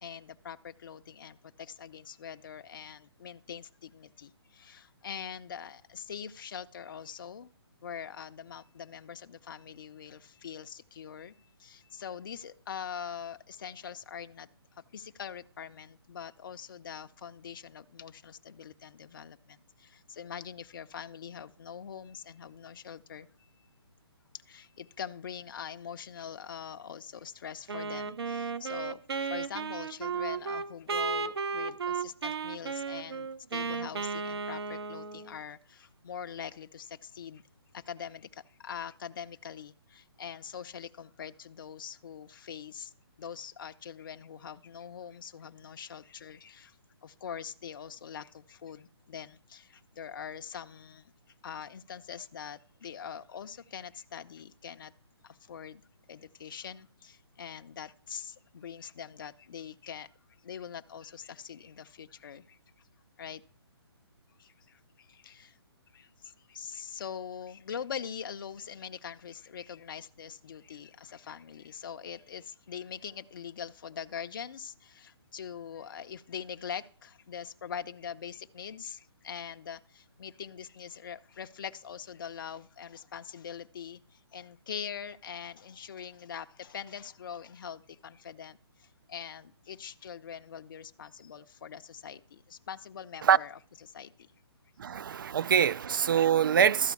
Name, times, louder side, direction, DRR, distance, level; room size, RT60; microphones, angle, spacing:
voice 1, 0.0-7.5 7.8-11.3 11.6-14.5 14.9-23.3 24.5-37.4 37.7-42.9 43.2-46.8 47.0-51.1 51.4-54.9 55.2-55.8 56.1-60.1 60.4-62.6 63.2-63.4 64.4-65.6 65.9-94.3, left 8 dB, 50° left, 0.6 m, -43 dB
Wind instrument woodwind instrument, 27.7-35.4, right 5 dB, 65° right, 1.0 m, -34 dB
voice 2, 94.8-96.9, right 8 dB, 50° right, 0.4 m, -24 dB
13.0 x 5.0 x 8.3 m
hypercardioid pair, 165°, 14 cm